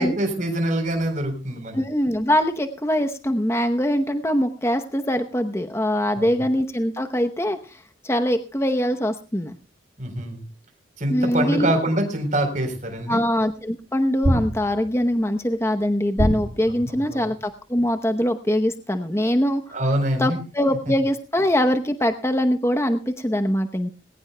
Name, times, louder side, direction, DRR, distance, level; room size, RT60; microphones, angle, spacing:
voice 1, 0.0-1.8 6.2-6.4 10.0-10.4 11.0-13.2 16.9-17.2 19.7-20.4 20.9-21.0, right 1 dB, 40° right, 5 dB, 3.9 m, -25 dB
voice 2, 1.7-9.5 11.1-11.7 13.1-19.6 20.2-23.9, equal, 15° left, 7 dB, 0.8 m, -23 dB
sound 1, 13.0-13.1 14.2-15.0 16.2-16.9, equal, 65° right, 5.9 m, -24 dB
20.5 x 17.5 x 2.2 m, 0.33 s
head